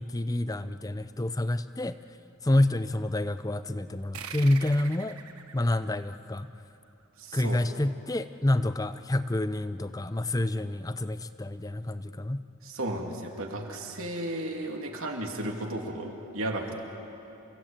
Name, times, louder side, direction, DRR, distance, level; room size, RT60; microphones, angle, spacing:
voice 1, 0.0-2.0 2.4-5.2 5.5-6.5 7.3-12.4, left 1 dB, 15° left, 13 dB, 0.5 m, -28 dB
sound 1, 4.1-7.2, right 7 dB, 80° right, 1.3 m, -44 dB
voice 2, 7.2-7.6 12.6-16.8, right 1 dB, 65° right, 1 dB, 2.7 m, -34 dB
28.5 x 16.5 x 8.9 m, 2.9 s
head